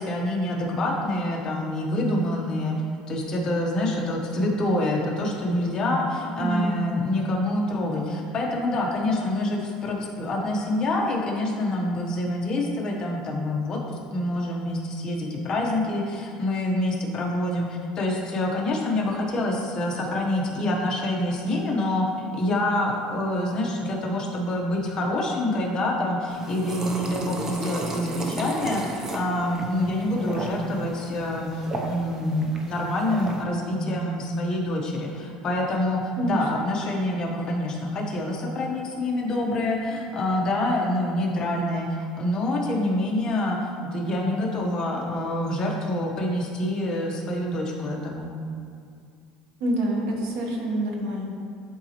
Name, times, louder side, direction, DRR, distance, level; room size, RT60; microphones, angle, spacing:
voice 1, 0.0-2.8 3.1-48.3, left 1 dB, 30° left, -1 dB, 1.0 m, -26 dB
voice 2, 6.4-6.8 36.2-36.4 49.6-51.3, right 1 dB, 80° right, 0 dB, 1.2 m, -26 dB
sound 1, 26.3-33.4, right 2 dB, 20° right, 0.6 m, -34 dB
11.0 x 4.0 x 2.9 m, 2.3 s
cardioid pair, 160°, 2 cm